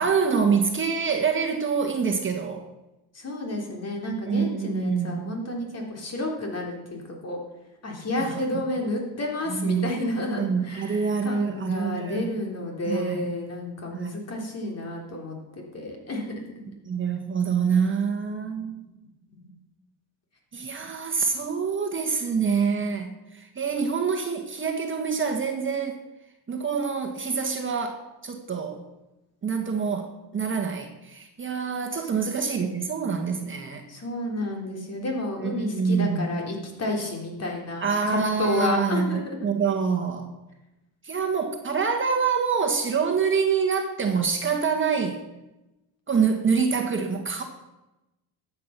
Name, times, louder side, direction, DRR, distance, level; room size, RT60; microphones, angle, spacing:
voice 1, 0.0-2.7 4.0-5.3 8.2-8.4 9.5-10.0 10.4-12.3 12.9-13.3 13.9-14.1 16.9-18.9 20.5-26.0 26.5-28.8 29.4-33.8 35.4-36.3 37.8-40.3 41.0-45.2 46.1-47.4, right 5 dB, 30° right, 3 dB, 1.7 m, -26 dB
voice 2, 3.1-7.4 7.8-16.3 19.3-19.5 32.0-32.5 33.9-39.5, left 1 dB, 35° left, 1 dB, 3.8 m, -31 dB
13.0 x 8.6 x 5.9 m, 0.97 s
cardioid pair, 110°, 42 cm